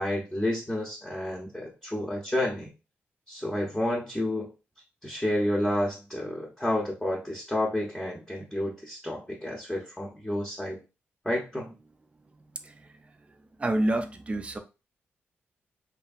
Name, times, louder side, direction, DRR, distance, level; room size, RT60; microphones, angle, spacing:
voice 1, 0.0-2.7 3.3-4.5 5.0-10.8 11.2-11.7, left 1 dB, 10° left, -3 dB, 0.7 m, -30 dB
voice 2, 13.6-14.6, right 1 dB, 25° right, 7 dB, 0.4 m, -27 dB
2.8 x 2.5 x 2.4 m, 0.30 s
cardioid pair, 90°, 5 cm